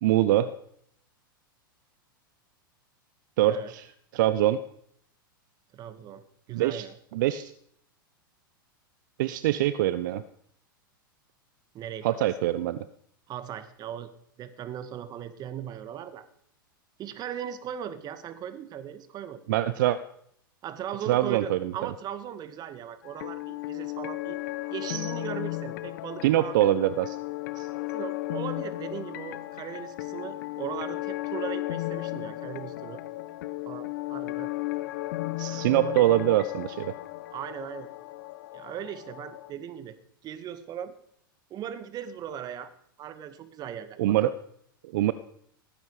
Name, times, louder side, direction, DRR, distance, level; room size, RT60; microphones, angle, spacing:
voice 1, 0.0-0.5 3.4-3.9 4.1-4.6 6.5-6.9 7.1-7.5 9.2-10.2 12.0-12.8 19.5-20.0 21.1-21.7 24.9-25.1 26.2-27.2 27.6-27.7 35.4-36.9 44.0-44.3 44.9-45.1, right 13 dB, 60° right, 14 dB, 0.9 m, -24 dB
voice 2, 5.7-7.0 11.7-12.3 13.3-14.1 14.4-16.3 17.0-19.4 20.6-24.4 24.7-26.6 27.9-33.0 33.7-34.5 35.5-36.0 37.3-37.9 38.5-40.0 40.2-40.9 41.5-42.7 43.0-44.3, right 9 dB, 35° right, 12 dB, 2.0 m, -38 dB
sound 1, 23.0-39.5, left 19 dB, 60° left, 1.2 m, -35 dB
18.0 x 15.5 x 5.0 m, 0.68 s
hypercardioid pair, 100°, 12 cm